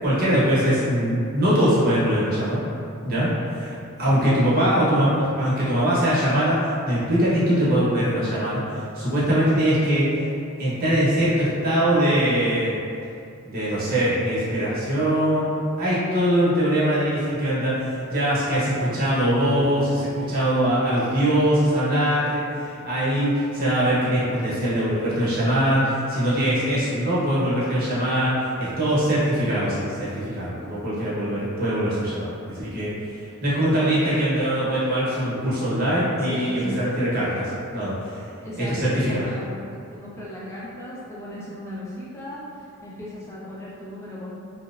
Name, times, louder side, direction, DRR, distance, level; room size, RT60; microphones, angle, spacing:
voice 1, 0.0-2.6 3.0-8.6 8.9-10.2 10.6-12.8 13.4-15.5 15.8-32.9 33.4-38.2 38.6-39.3, equal, 40° right, -9 dB, 0.7 m, -22 dB
voice 2, 36.2-37.2 38.4-39.4 39.9-44.3, left 1 dB, 10° left, -7 dB, 0.4 m, -36 dB
2.8 x 2.0 x 2.4 m, 2.5 s
head